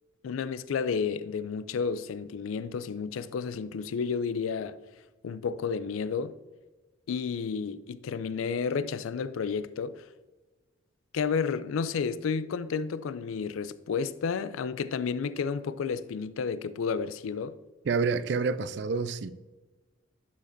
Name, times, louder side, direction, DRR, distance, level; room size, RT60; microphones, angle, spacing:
voice 1, 0.2-4.8 5.2-6.4 7.1-10.1 11.1-17.6, left 5 dB, 90° left, 0.4 m, -31 dB
voice 2, 17.9-19.3, right 4 dB, 60° right, 0.3 m, -28 dB
11.0 x 5.0 x 2.6 m
head